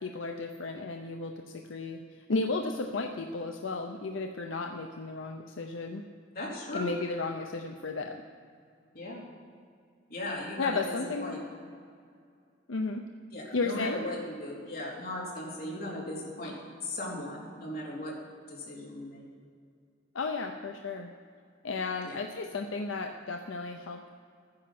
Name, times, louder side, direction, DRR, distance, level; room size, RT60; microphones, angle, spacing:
voice 1, 0.0-2.0 2.3-6.0 6.7-8.2 10.6-11.4 12.7-13.1 13.5-14.0 20.1-21.1 21.6-24.1, left 3 dB, 80° left, 4 dB, 0.7 m, -34 dB
voice 2, 6.3-6.9 8.9-9.2 10.1-11.0 11.2-11.4 13.3-18.1 18.5-19.2 22.0-22.2, left 1 dB, 50° left, -5 dB, 3.5 m, -37 dB
13.0 x 9.8 x 6.0 m, 2.3 s
head